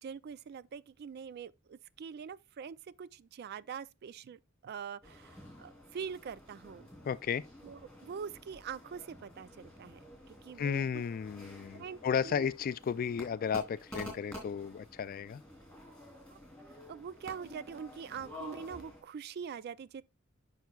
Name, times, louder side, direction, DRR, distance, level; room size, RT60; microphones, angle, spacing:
voice 1, 0.0-6.9 7.6-10.0 10.3-11.0 11.7-12.0 12.2-12.5 16.3-16.4 16.9-20.0, right 6 dB, 50° right, 0.3 m, -44 dB
sound 1, 5.0-19.0, left 1 dB, 5° left, 3.1 m, -50 dB
voice 2, 7.0-7.4 10.6-15.4, left 7 dB, 45° left, 0.3 m, -34 dB
9.2 x 5.7 x 2.3 m
head